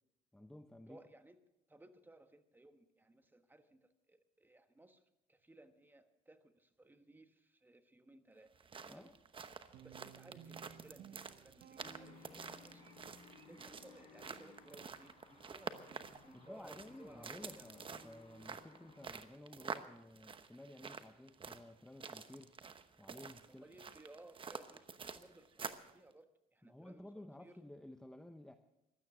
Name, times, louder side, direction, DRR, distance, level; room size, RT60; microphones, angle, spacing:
voice 1, 0.3-1.0 8.9-9.2 16.3-22.5 23.0-23.7 26.6-28.6, left 1 dB, 5° left, 8 dB, 0.8 m, -54 dB
voice 2, 0.9-1.4 1.7-5.0 5.3-8.5 8.8-9.1 9.8-13.0 13.5-17.7 20.8-21.0 23.5-27.6, right 2 dB, 10° right, 8 dB, 1.3 m, -61 dB
sound 1, 8.5-25.9, right 5 dB, 30° right, 1.0 m, -49 dB
Guitar, 9.7-13.0, right 9 dB, 65° right, 1.1 m, -58 dB
sound 2, 11.8-19.1, left 4 dB, 40° left, 5.2 m, -60 dB
16.0 x 12.5 x 6.1 m, 0.89 s
cardioid pair, 110°, 17 cm